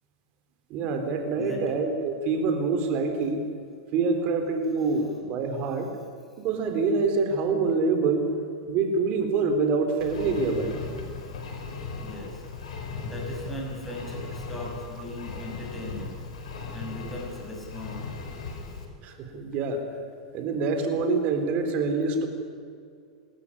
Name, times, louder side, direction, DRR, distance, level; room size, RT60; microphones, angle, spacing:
voice 1, 0.7-3.4 3.9-5.9 6.4-8.3 8.7-10.8 19.0-19.8 20.3-22.3, right 4 dB, 45° right, 6 dB, 3.8 m, -26 dB
voice 2, 1.4-1.8 5.0-5.1 12.0-12.4 13.0-16.2 16.7-18.4, equal, 5° left, -2 dB, 6.2 m, -38 dB
Engine, 10.0-18.9, left 4 dB, 90° left, 6.4 m, -37 dB
27.5 x 13.5 x 9.9 m, 2.3 s
supercardioid pair, 135°, 3 cm